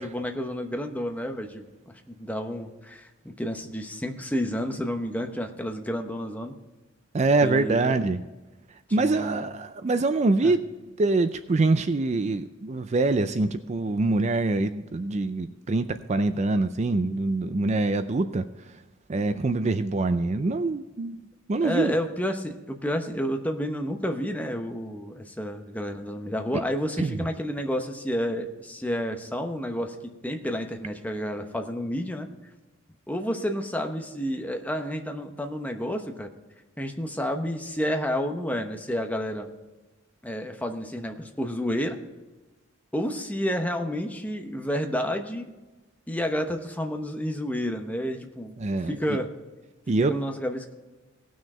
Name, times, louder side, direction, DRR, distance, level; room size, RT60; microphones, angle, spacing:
voice 1, 0.0-6.6 7.4-8.0 8.9-9.5 10.4-10.6 21.6-32.3 33.1-36.3 36.8-39.5 40.2-42.0 42.9-45.4 46.1-48.6 48.8-49.3 50.0-50.7, equal, 10° left, 5 dB, 0.9 m, -30 dB
voice 2, 7.1-8.2 8.9-10.6 11.0-18.4 19.1-21.2 21.5-21.9 27.0-27.2 48.6-48.9 49.9-50.1, right 3 dB, 35° right, 10 dB, 0.4 m, -24 dB
18.0 x 6.3 x 4.3 m, 1.2 s
head